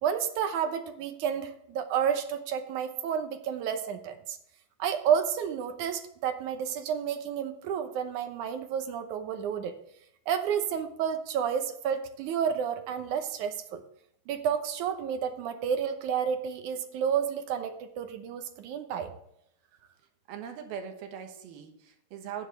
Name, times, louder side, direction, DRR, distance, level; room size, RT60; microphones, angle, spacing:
voice 1, 0.0-4.4 4.8-9.8 10.3-13.8 14.3-19.1, right 8 dB, 70° right, 8 dB, 2.0 m, -30 dB
voice 2, 20.3-22.5, right 8 dB, 90° right, 5 dB, 3.3 m, -40 dB
12.5 x 9.8 x 3.3 m, 0.74 s
omnidirectional pair, 4.2 m